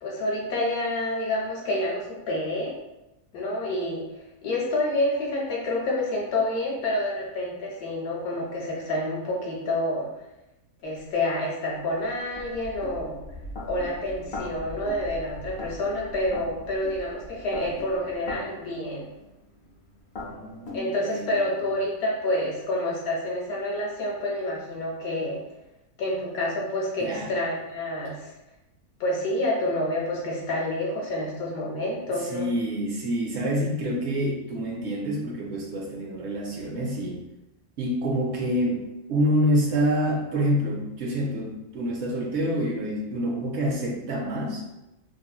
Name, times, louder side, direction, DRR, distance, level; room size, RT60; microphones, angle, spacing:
voice 1, 0.0-2.7 3.3-10.1 10.8-13.2 13.6-19.1 20.7-25.4 26.0-28.3 29.0-32.5, left 1 dB, 85° left, -3 dB, 1.1 m, -28 dB
sound 1, 11.0-11.1 11.7-20.8, left 1 dB, 50° left, 0.7 m, -40 dB
voice 2, 20.2-21.5 27.0-27.3 32.1-37.2 37.8-38.8 39.1-44.7, equal, 65° right, -1 dB, 0.7 m, -27 dB
3.0 x 2.6 x 2.3 m, 0.94 s
omnidirectional pair, 1.5 m